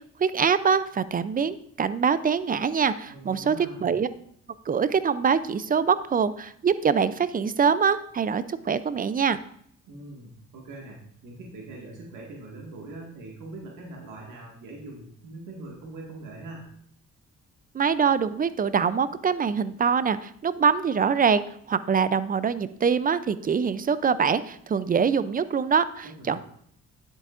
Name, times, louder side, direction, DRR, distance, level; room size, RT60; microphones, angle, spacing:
voice 1, 0.0-3.6 3.8-4.1 4.7-9.4 17.7-26.4, right 6 dB, 30° right, 15 dB, 0.4 m, -24 dB
voice 2, 3.1-3.9 9.8-16.7 26.0-26.4, right 2 dB, 85° right, -1 dB, 1.9 m, -42 dB
9.8 x 7.8 x 2.5 m, 0.66 s
cardioid pair, 90°, 30 cm